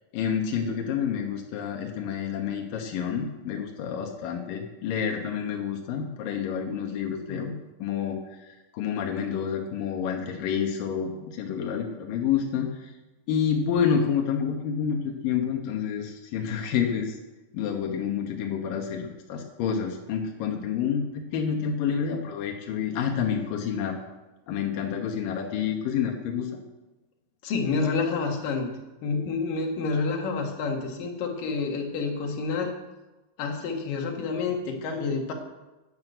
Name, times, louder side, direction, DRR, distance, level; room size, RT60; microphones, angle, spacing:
voice 1, 0.1-7.5 7.8-12.9 13.3-17.2 17.5-24.0 24.5-26.6, left 7 dB, 75° left, 2 dB, 2.1 m, -29 dB
voice 2, 27.4-28.7 29.0-32.7 33.4-35.3, left 4 dB, 55° left, 2 dB, 2.8 m, -28 dB
12.0 x 9.5 x 7.9 m, 1.1 s
omnidirectional pair, 5.7 m